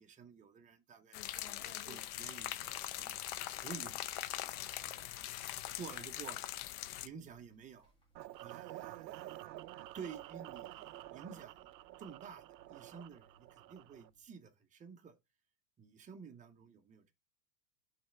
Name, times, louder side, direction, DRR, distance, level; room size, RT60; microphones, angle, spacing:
voice 1, 0.0-4.0 4.8-5.1 5.7-6.5 7.0-7.9 8.4-9.5 9.9-11.7 12.0-15.2 15.8-17.1, right 6 dB, 15° right, 0.8 m, -51 dB
sound 1, 1.1-7.1, left 14 dB, 45° left, 0.6 m, -42 dB
sound 2, 2.6-14.2, right 2 dB, 10° left, 1.6 m, -70 dB
sound 3, 8.2-14.1, right 15 dB, 85° right, 0.6 m, -49 dB
5.6 x 3.4 x 5.7 m
hypercardioid pair, 125°, 49 cm